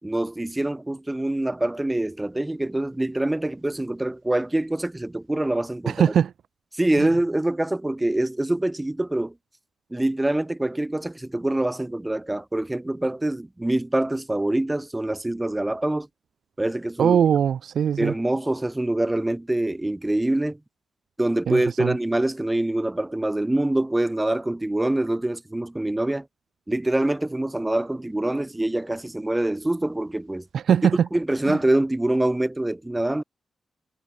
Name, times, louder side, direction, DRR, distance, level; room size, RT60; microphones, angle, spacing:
voice 1, 0.0-6.1 6.8-9.3 9.9-16.1 16.6-17.2 18.0-20.6 21.2-26.3 26.7-30.5 31.1-33.2, right 1 dB, 10° right, 4.5 m, -25 dB
voice 2, 5.9-6.3 7.0-7.1 17.0-18.1 21.5-21.9 30.5-31.1 31.5-31.6, right 8 dB, 75° right, 1.3 m, -21 dB
cardioid pair, 105°, 0 cm